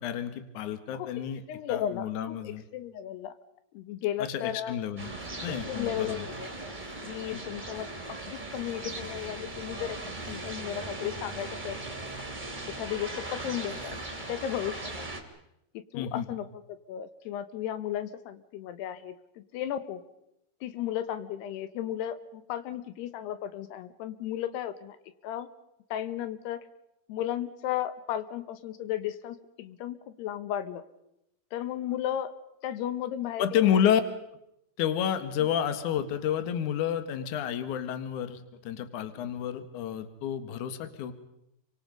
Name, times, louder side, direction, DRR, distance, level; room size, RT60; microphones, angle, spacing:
voice 1, 0.0-1.4 1.7-2.6 4.2-5.1 5.4-6.3 7.3-7.4 15.9-16.3 33.4-34.0 34.8-41.1, left 9 dB, 60° left, 10 dB, 2.7 m, -30 dB
voice 2, 0.9-3.3 3.7-4.8 5.5-6.5 7.0-7.9 8.3-10.0 10.3-11.8 12.8-14.0 14.3-15.1 15.9-20.0 20.6-25.0 25.2-25.5 25.9-26.6 27.1-30.8 31.5-32.3 32.6-33.8, left 11 dB, 90° left, 11 dB, 3.3 m, -35 dB
sound 1, 5.0-15.2, right 2 dB, 15° right, 2.7 m, -39 dB
29.5 x 24.5 x 5.4 m, 0.82 s
omnidirectional pair, 4.6 m